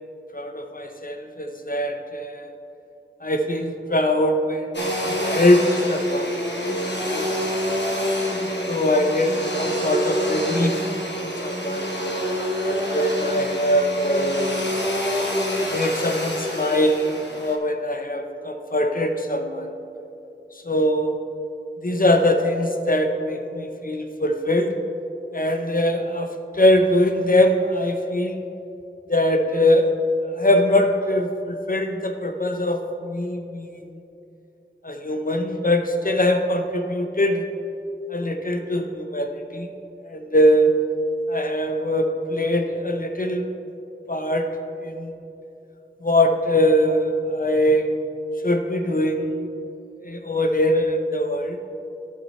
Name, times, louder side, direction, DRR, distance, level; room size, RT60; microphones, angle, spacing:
voice 1, 0.3-2.5 3.2-6.3 6.6-7.3 8.3-10.9 11.2-11.9 12.6-14.6 15.7-17.1 17.4-19.7 20.6-21.2 21.8-24.8 25.3-28.4 29.1-29.9 30.3-34.0 34.8-37.5 38.1-39.7 40.0-40.7 41.3-43.5 44.1-44.5 44.8-45.2 46.0-47.9 48.4-49.5 50.0-51.6, left 1 dB, 45° left, 5 dB, 0.8 m, -22 dB
Domestic sounds home sounds, 4.7-17.6, equal, 60° left, 1.3 m, -26 dB
15.0 x 5.7 x 3.2 m, 2.8 s
wide cardioid pair, 45°, 20 cm